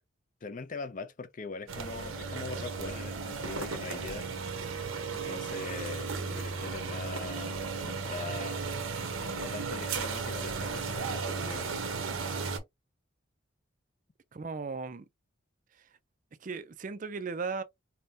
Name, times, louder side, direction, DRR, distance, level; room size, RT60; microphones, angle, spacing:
voice 1, 0.4-4.3 5.1-8.7 9.2-11.9 12.3-12.5, left 4 dB, 40° left, 0.4 m, -42 dB
sound 1, 1.7-12.6, right 4 dB, 90° right, 0.9 m, -35 dB
voice 2, 14.3-15.1 15.8-15.9 16.4-17.6, right 4 dB, 40° right, 0.4 m, -36 dB
5.3 x 2.2 x 2.7 m
head